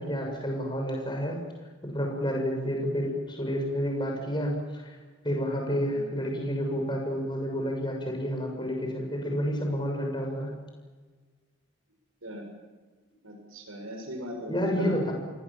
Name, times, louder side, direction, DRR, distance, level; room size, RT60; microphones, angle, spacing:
voice 1, 0.0-1.4 1.8-5.0 5.2-10.5 14.5-15.1, equal, 20° left, 1 dB, 6.9 m, -30 dB
voice 2, 13.2-15.0, equal, 85° right, 4 dB, 6.9 m, -38 dB
29.5 x 22.5 x 7.5 m, 1.4 s
head